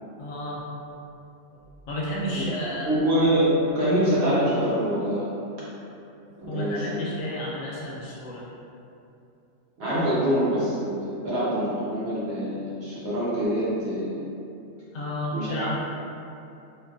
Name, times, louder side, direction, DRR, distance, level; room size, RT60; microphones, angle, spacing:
voice 1, 0.2-1.0 1.5-2.9 6.5-8.5 14.9-15.8, equal, 90° left, -6 dB, 1.0 m, -32 dB
voice 2, 2.9-5.3 6.4-7.0 9.8-14.1 15.3-15.6, equal, 60° right, -9 dB, 1.0 m, -25 dB
2.6 x 2.2 x 2.3 m, 2.7 s
omnidirectional pair, 1.3 m